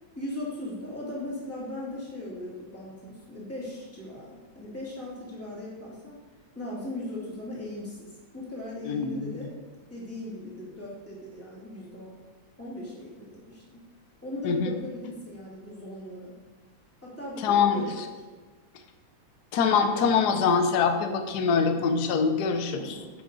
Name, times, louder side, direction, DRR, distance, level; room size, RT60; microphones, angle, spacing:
voice 1, 0.1-6.2 6.5-9.5 9.9-12.1 12.6-13.9 14.2-16.3 17.0-18.1 22.7-23.1, left 1 dB, 5° left, -6 dB, 2.5 m, -38 dB
voice 2, 8.9-9.3 14.4-14.7 17.4-17.8 19.5-23.0, left 5 dB, 60° left, 6 dB, 1.3 m, -24 dB
10.0 x 6.6 x 4.1 m, 1.3 s
omnidirectional pair, 2.2 m